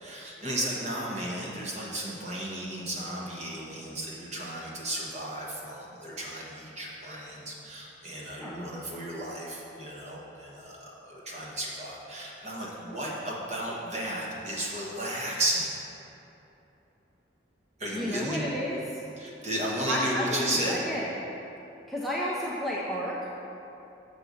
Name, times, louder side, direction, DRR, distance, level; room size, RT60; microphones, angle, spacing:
voice 1, 0.0-15.7 17.8-18.4 19.2-20.8, right 1 dB, 35° right, -4 dB, 1.2 m, -34 dB
voice 2, 8.4-8.7 17.9-19.0 19.9-21.1 21.9-23.3, equal, ahead, -6 dB, 0.5 m, -31 dB
6.7 x 4.0 x 6.2 m, 3.0 s
head